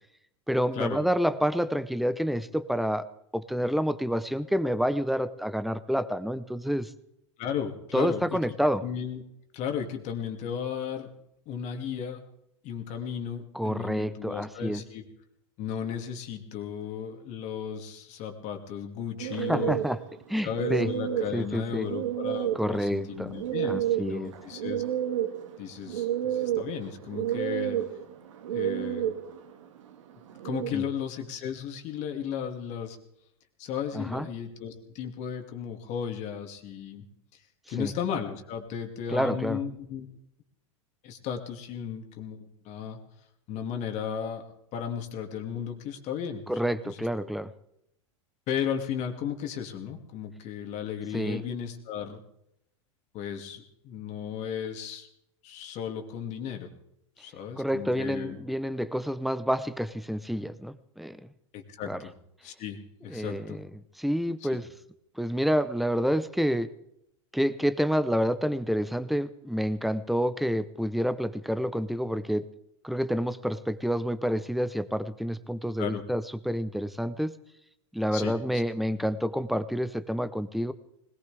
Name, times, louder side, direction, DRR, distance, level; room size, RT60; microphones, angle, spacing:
voice 1, 0.5-3.1 3.3-6.9 7.9-8.8 13.5-14.8 19.5-20.0 20.3-20.9 21.3-21.9 22.5-23.3 23.6-24.3 30.7-30.8 33.9-34.3 37.8-37.9 39.1-39.6 46.5-47.5 51.1-51.4 57.6-61.2 61.8-62.0 63.1-64.7 65.2-66.7 67.3-72.5 72.8-77.4 77.9-80.7, equal, ahead, 14 dB, 0.8 m, -28 dB
voice 2, 7.4-8.4 8.8-9.2 9.5-11.1 11.5-12.2 12.6-15.0 15.6-19.7 20.4-24.8 25.6-27.8 28.5-29.1 30.4-33.0 33.6-37.0 37.7-40.1 41.0-43.0 43.5-44.4 44.7-47.1 48.5-52.2 53.1-55.1 55.4-56.7 57.2-58.4 61.5-62.1 62.4-63.6 64.5-64.6 75.8-76.0 78.1-78.6, left 8 dB, 45° left, 5 dB, 2.5 m, -35 dB
sound 1, 19.2-30.7, right 11 dB, 80° right, 1.8 m, -31 dB
20.5 x 19.0 x 3.4 m, 0.78 s
hypercardioid pair, 105°, 16 cm